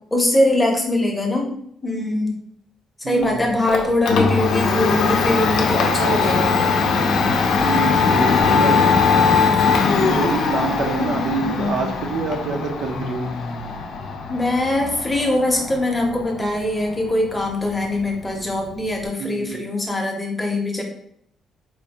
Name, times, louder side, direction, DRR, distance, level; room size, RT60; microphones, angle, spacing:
voice 1, 0.1-1.5 1.8-2.4 3.0-6.6 9.4-10.2 14.3-20.8, left 1 dB, 10° left, 0 dB, 0.7 m, -22 dB
voice 2, 3.0-3.5 7.6-9.0 10.0-13.3 19.2-19.6, right 4 dB, 70° right, 2 dB, 0.5 m, -26 dB
Domestic sounds home sounds, 3.2-19.1, left 5 dB, 65° left, 0.5 m, -21 dB
4.3 x 2.5 x 2.8 m, 0.69 s
cardioid pair, 160°, 0 cm